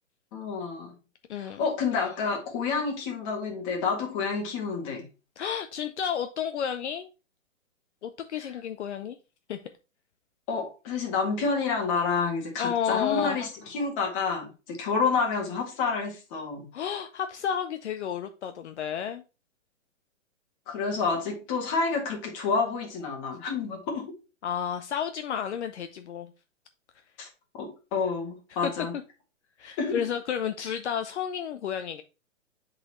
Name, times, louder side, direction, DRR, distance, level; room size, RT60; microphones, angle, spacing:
voice 1, 0.3-0.9 1.4-5.1 8.4-8.5 10.5-16.7 20.7-24.1 27.2-27.3 27.5-28.9 29.8-30.0, left 4 dB, 25° left, 1 dB, 1.7 m, -29 dB
voice 2, 1.3-1.6 5.4-7.1 8.0-9.2 9.5-9.6 12.6-13.4 16.7-19.2 24.4-26.3 28.6-28.7 29.6-32.0, left 8 dB, 60° left, 8 dB, 0.6 m, -31 dB
7.8 x 4.0 x 3.1 m, 0.31 s
hypercardioid pair, 155°, 38 cm